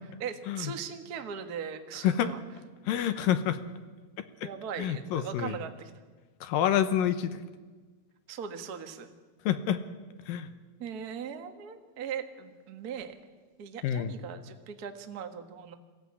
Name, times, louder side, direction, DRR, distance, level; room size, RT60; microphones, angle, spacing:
voice 1, 0.2-2.4 3.0-3.1 4.4-5.9 8.3-9.1 10.8-13.2 13.6-15.7, right 7 dB, 80° right, 6 dB, 0.8 m, -39 dB
voice 2, 2.0-2.3 2.9-3.6 4.8-5.6 6.4-7.4 9.5-9.8 10.3-10.5 13.8-14.1, left 10 dB, 75° left, 11 dB, 2.4 m, -27 dB
22.0 x 16.0 x 9.7 m, 1.4 s
omnidirectional pair, 4.4 m